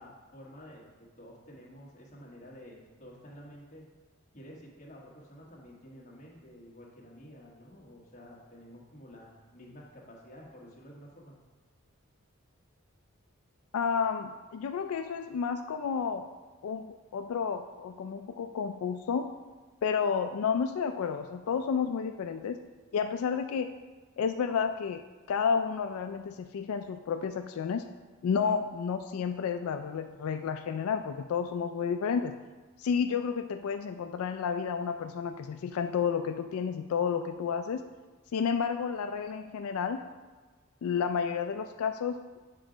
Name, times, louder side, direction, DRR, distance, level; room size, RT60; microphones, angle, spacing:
voice 1, 0.0-3.9 4.3-11.3, equal, 35° left, -3 dB, 1.3 m, -50 dB
voice 2, 13.7-16.2 16.6-19.3 19.8-22.6 22.9-23.7 24.2-27.8 28.2-32.3 32.8-37.8 38.3-40.0 40.8-42.2, left 6 dB, 85° left, 7 dB, 0.3 m, -31 dB
7.3 x 3.8 x 5.0 m, 1.3 s
head